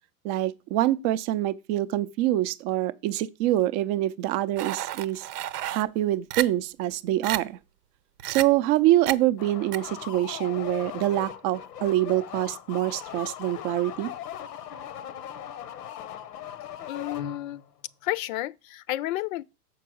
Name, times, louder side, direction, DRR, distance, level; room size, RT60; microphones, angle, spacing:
voice 1, 0.2-5.3 5.7-7.6 8.3-14.1, right 14 dB, 35° right, 0.4 m, -25 dB
sound 1, 4.6-5.8 6.3-6.4 6.9-7.0 7.2-7.4 8.2-8.4 9.1-9.2 9.7-9.8, right 12 dB, 90° right, 0.8 m, -31 dB
sound 2, 9.4-17.7, left 9 dB, 85° left, 1.0 m, -39 dB
voice 2, 16.9-17.6 18.0-19.4, left 15 dB, 65° left, 0.6 m, -31 dB
6.8 x 4.6 x 6.1 m
supercardioid pair, 135°, 46 cm